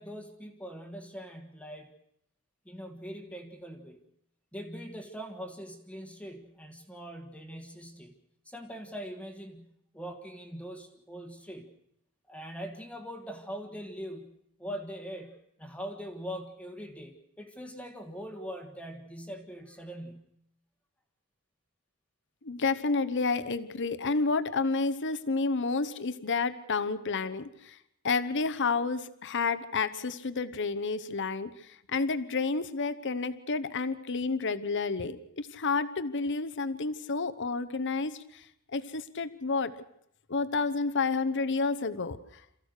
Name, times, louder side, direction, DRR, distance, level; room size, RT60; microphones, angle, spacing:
voice 1, 0.0-1.9 2.6-4.0 4.5-8.1 8.4-11.7 12.3-20.3, equal, 5° left, 5 dB, 1.6 m, -42 dB
voice 2, 22.4-27.8 28.0-31.5 31.9-38.2 38.7-39.7 40.3-42.2, left 4 dB, 55° left, 12 dB, 1.0 m, -30 dB
27.5 x 15.0 x 6.6 m, 0.75 s
head